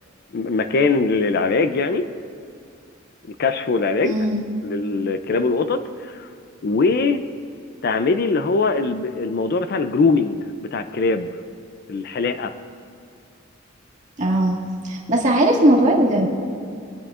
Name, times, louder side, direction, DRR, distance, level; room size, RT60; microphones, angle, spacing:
voice 1, 0.3-2.1 3.4-4.1 4.6-6.3 6.6-7.2 7.8-11.3 11.9-12.5, left 3 dB, 50° left, 10 dB, 0.4 m, -21 dB
voice 2, 4.0-4.4 14.2-14.6 14.8-16.3, right 1 dB, 40° right, -2 dB, 1.7 m, -18 dB
26.5 x 9.2 x 2.4 m, 2.3 s
head